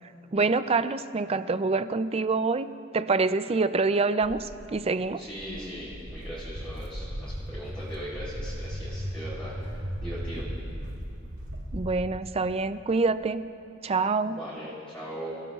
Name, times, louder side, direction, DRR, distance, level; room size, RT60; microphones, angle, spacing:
voice 1, 0.3-5.3 11.7-13.4 13.8-14.4, right 3 dB, 30° right, 12 dB, 0.4 m, -26 dB
Walk footsteps, 4.2-11.9, equal, 85° right, 2.0 m, -37 dB
voice 2, 5.2-10.5 14.2-15.4, equal, 5° left, -10 dB, 3.5 m, -39 dB
29.5 x 16.5 x 2.4 m, 2.5 s
head